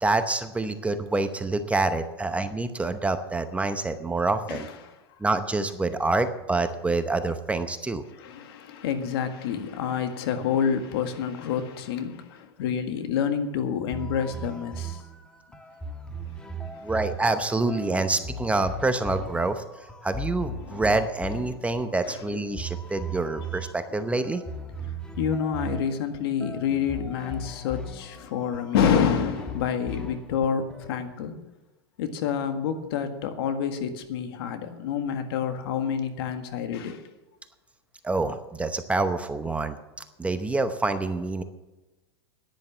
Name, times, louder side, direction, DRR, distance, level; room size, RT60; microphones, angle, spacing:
voice 1, 0.0-4.7 5.2-8.0 16.8-19.6 20.0-24.4 38.0-39.8 40.2-41.4, right 3 dB, 10° right, 9 dB, 0.8 m, -26 dB
voice 2, 4.5-4.9 8.1-15.0 17.9-18.0 20.6-20.8 22.0-22.2 25.2-31.3 32.0-37.0, left 7 dB, 65° left, 7 dB, 1.7 m, -28 dB
sound 1, 13.9-31.2, right 1 dB, 5° left, 1.3 m, -38 dB
10.5 x 10.5 x 7.3 m, 1.1 s
hypercardioid pair, 120°, 14 cm